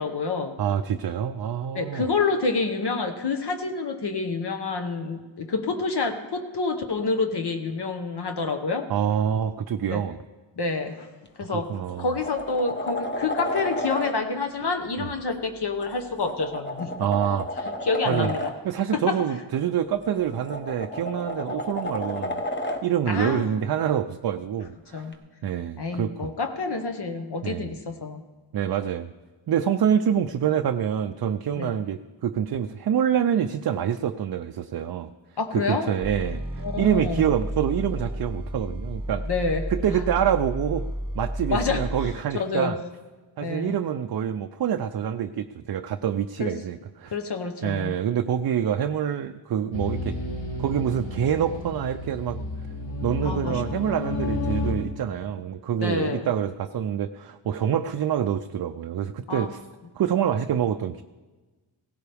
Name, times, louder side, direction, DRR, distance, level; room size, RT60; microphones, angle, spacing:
voice 1, 0.0-0.5 1.7-8.9 9.8-10.0 10.6-11.1 11.4-16.9 17.8-18.5 18.9-19.2 23.1-23.6 24.9-25.1 25.8-28.2 31.6-31.7 35.4-35.9 36.6-37.3 39.3-40.0 41.5-42.8 43.4-43.7 46.4-46.5 47.1-47.9 53.2-53.6 55.8-56.3 59.3-59.5, left 4 dB, 55° left, 5 dB, 1.0 m, -28 dB
voice 2, 0.6-2.1 8.9-10.2 11.5-12.1 15.0-15.1 17.0-17.5 18.1-18.3 18.6-22.4 22.8-25.0 25.4-26.3 27.4-27.7 28.5-29.1 29.5-35.1 35.5-39.3 39.7-40.9 41.1-42.8 43.4-47.1 47.6-50.2 50.6-52.4 53.0-59.6 59.9-61.0, right 9 dB, 55° right, 8 dB, 0.5 m, -26 dB
sound 1, 11.3-11.4 11.9-14.1 15.8-18.5 20.0-22.8 25.1-25.2, left 1 dB, 25° left, 1.1 m, -32 dB
sound 2, 36.0-42.1, equal, 10° right, 0.9 m, -32 dB
sound 3, 49.7-54.7, left 2 dB, 85° left, 3.9 m, -31 dB
17.0 x 15.5 x 3.5 m, 1.3 s
wide cardioid pair, 110°, 47 cm